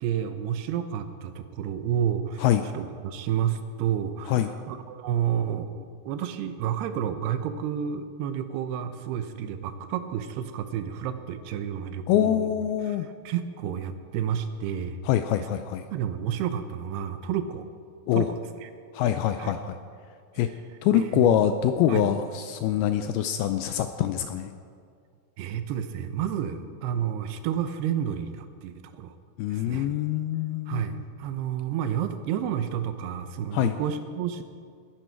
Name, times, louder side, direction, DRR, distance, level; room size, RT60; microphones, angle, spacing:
voice 1, 0.0-2.4 2.7-12.5 12.9-13.0 13.3-15.0 15.9-17.7 18.1-18.7 19.4-19.5 20.9-21.4 21.9-22.1 25.4-29.2 29.5-29.9 30.7-34.4, right 9 dB, 80° right, 9 dB, 2.8 m, -30 dB
voice 2, 12.1-13.1 15.0-15.9 18.1-18.3 18.9-19.8 20.4-20.5 20.8-24.5 29.4-31.1 33.5-33.8, left 11 dB, 80° left, 9 dB, 2.3 m, -24 dB
19.5 x 10.5 x 4.6 m, 2.2 s
omnidirectional pair, 4.8 m